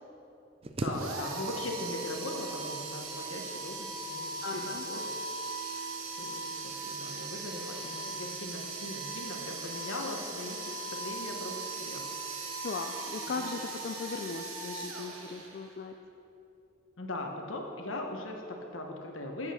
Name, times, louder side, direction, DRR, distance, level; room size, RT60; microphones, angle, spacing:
sound 1, 0.6-1.7 2.0-2.7 3.6-4.4 5.0-5.4 5.8-6.1, right 2 dB, 30° right, 0.5 m, -40 dB
voice 1, 0.8-5.1 5.7-5.9 6.2-12.1 13.3-13.5 17.0-19.5, left 2 dB, 75° left, 2 dB, 1.1 m, -40 dB
sound 2, 0.9-15.8, right 3 dB, 85° right, 1.2 m, -39 dB
voice 2, 4.4-4.8 12.6-16.0, left 4 dB, 50° left, 4 dB, 0.4 m, -38 dB
7.2 x 6.5 x 6.8 m, 2.8 s
head